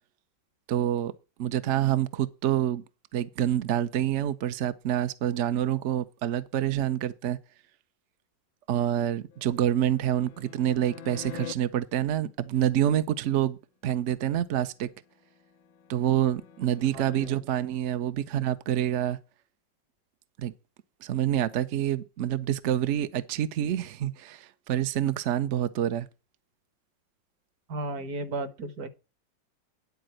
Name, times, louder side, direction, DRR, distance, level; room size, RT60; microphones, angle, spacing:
voice 1, 0.7-1.1 1.4-2.8 3.1-7.4 8.7-13.6 13.8-14.9 15.9-19.2 20.4-20.5 21.0-26.1, right 11 dB, 75° right, 0.6 m, -27 dB
sound 1, 9.3-11.5 14.9-17.3, left 8 dB, 85° left, 1.4 m, -46 dB
voice 2, 16.9-17.4 27.7-28.9, right 2 dB, 55° right, 1.6 m, -34 dB
10.5 x 4.2 x 7.7 m
omnidirectional pair, 2.0 m